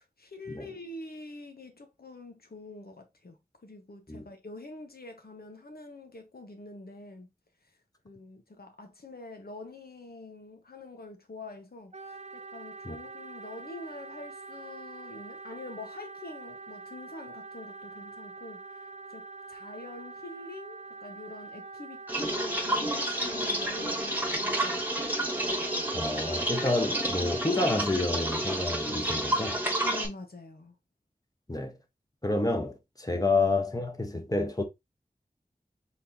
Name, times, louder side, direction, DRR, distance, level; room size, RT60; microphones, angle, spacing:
voice 1, 0.0-7.3 8.0-18.6 19.1-25.1 29.8-30.8, left 2 dB, 85° left, 1.1 m, -45 dB
Wind instrument woodwind instrument, 11.9-27.8, right 3 dB, 45° right, 0.5 m, -45 dB
sound 1, 22.1-30.1, right 1 dB, 10° right, 1.3 m, -30 dB
voice 2, 25.9-29.6 31.5-31.8 32.2-34.6, left 2 dB, 25° left, 1.1 m, -29 dB
4.4 x 3.7 x 2.7 m
wide cardioid pair, 50°, 15 cm